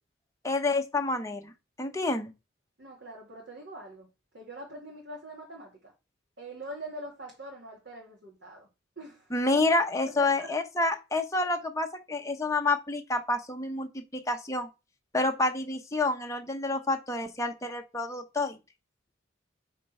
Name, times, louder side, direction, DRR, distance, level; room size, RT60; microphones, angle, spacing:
voice 1, 0.4-1.5 1.8-2.3 9.3-14.7 15.1-18.6, left 2 dB, 15° left, 1.0 m, -28 dB
voice 2, 2.8-4.1 4.3-5.9 6.4-8.7 9.0-9.3 10.1-10.5 11.4-11.5, right 2 dB, 60° right, 2.4 m, -43 dB
8.2 x 4.3 x 5.6 m
head